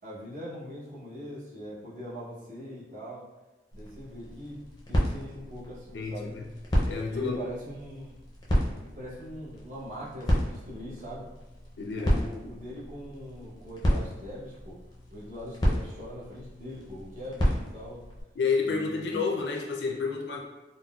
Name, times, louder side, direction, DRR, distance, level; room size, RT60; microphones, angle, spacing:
voice 1, 0.0-3.2 3.7-4.6 4.9-6.3 7.1-8.2 8.8-11.3 12.0-14.8 15.1-18.0 18.7-19.3, equal, 45° right, -7 dB, 0.9 m, -41 dB
sound 1, 3.7-18.2, equal, 25° left, 0.5 m, -32 dB
voice 2, 5.9-6.5 6.8-7.4 11.8-12.2 18.3-20.4, left 4 dB, 80° left, 1 dB, 0.5 m, -30 dB
3.8 x 2.0 x 2.3 m, 1.1 s
head